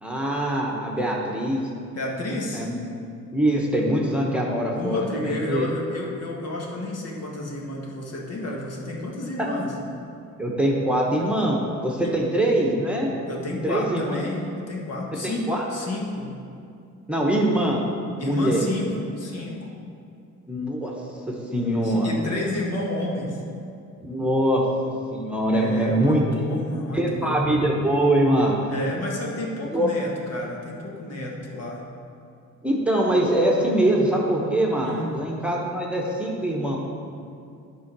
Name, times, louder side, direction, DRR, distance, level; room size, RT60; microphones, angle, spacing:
voice 1, 0.0-1.7 2.3-2.8 3.3-5.7 10.4-13.1 13.6-14.3 15.2-15.6 17.1-17.8 18.2-18.6 20.5-20.9 21.5-22.1 24.0-24.6 25.1-26.4 26.9-28.6 29.7-29.9 32.6-36.8, right 1 dB, 5° right, -2 dB, 1.2 m, -23 dB
voice 2, 1.9-2.7 4.6-9.7 12.0-12.1 13.3-16.4 18.2-19.7 21.8-23.4 25.5-27.4 28.6-31.9 34.8-35.2, left 2 dB, 55° left, -2 dB, 1.6 m, -31 dB
9.4 x 3.9 x 6.1 m, 2.4 s
cardioid pair, 90°, 30 cm